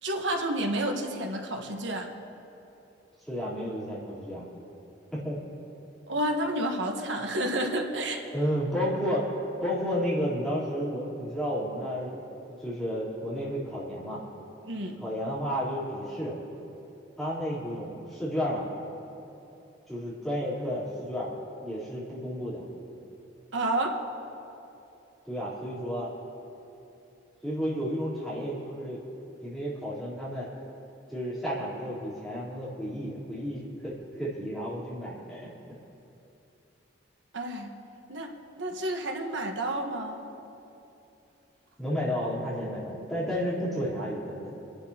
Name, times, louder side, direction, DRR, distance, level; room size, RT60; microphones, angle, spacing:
voice 1, 0.0-2.1 6.1-8.2 14.6-15.0 23.5-23.9 37.3-37.7 38.1-40.2, right 1 dB, 75° right, 2 dB, 1.3 m, -30 dB
voice 2, 3.3-4.4 5.1-5.4 8.3-9.3 9.6-12.2 12.6-14.2 15.0-16.3 17.2-18.7 19.9-22.6 25.3-26.1 27.4-29.0 29.4-30.5 31.1-35.5 41.8-44.5, equal, ahead, -9 dB, 3.5 m, -32 dB
29.0 x 11.5 x 2.9 m, 2.9 s
head